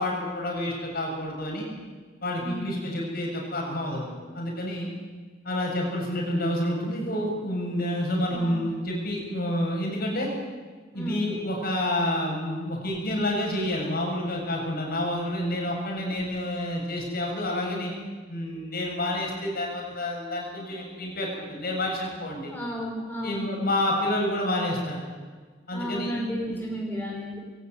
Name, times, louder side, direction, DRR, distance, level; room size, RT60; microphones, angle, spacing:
voice 1, 0.0-1.7 2.2-4.9 5.4-10.3 10.9-17.9 18.3-22.5 23.2-25.1 25.7-26.7, left 1 dB, 55° left, -1 dB, 7.6 m, -29 dB
voice 2, 8.3-8.6 10.9-11.2 22.5-23.5 25.7-27.4, equal, 10° left, -3 dB, 5.6 m, -33 dB
23.0 x 17.5 x 9.5 m, 1.4 s
head